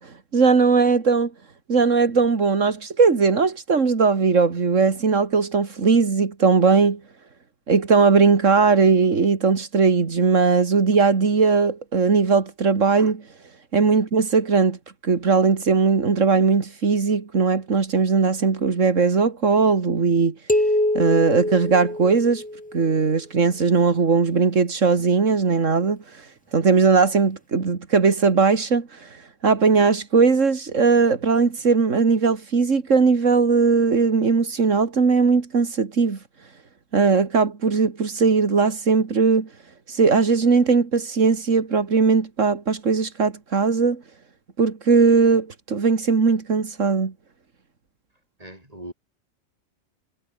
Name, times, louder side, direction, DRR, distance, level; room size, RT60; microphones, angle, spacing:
voice 1, 0.3-1.3 1.7-7.0 7.7-13.2 13.7-14.8 15.0-20.3 20.9-22.4 22.7-26.3 26.5-36.2 36.9-39.5 39.9-44.0 44.6-47.1, right 4 dB, 85° right, 2.5 m, -19 dB
sound 1, 20.5-22.9, left 1 dB, 5° left, 1.3 m, -24 dB
voice 2, 48.4-48.9, right 1 dB, 30° right, 7.7 m, -39 dB
omnidirectional pair, 1.3 m